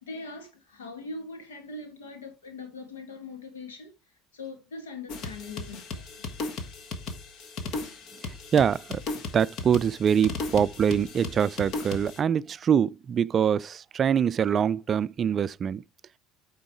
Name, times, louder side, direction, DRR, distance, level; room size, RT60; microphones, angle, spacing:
voice 1, 0.0-3.9 4.3-6.3, left 3 dB, 80° left, 1.5 m, -41 dB
sound 1, 5.1-12.2, left 3 dB, 55° left, 1.4 m, -36 dB
voice 2, 8.5-9.0 9.3-15.8, right 8 dB, 40° right, 0.3 m, -24 dB
8.7 x 3.9 x 4.7 m
hypercardioid pair, 65°, 0 cm